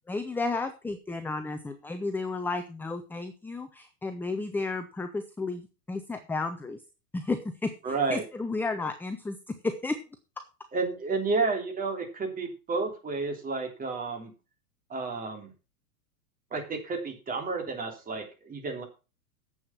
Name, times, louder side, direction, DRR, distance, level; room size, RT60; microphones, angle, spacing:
voice 1, 0.1-6.8 7.1-7.7 8.1-9.4 9.6-9.9, left 3 dB, 5° left, 8 dB, 0.6 m, -32 dB
voice 2, 7.8-8.2 10.7-14.3 14.9-15.5 16.5-18.8, right 4 dB, 20° right, 3 dB, 3.4 m, -31 dB
10.0 x 7.9 x 5.8 m, 0.31 s
hypercardioid pair, 135°, 46 cm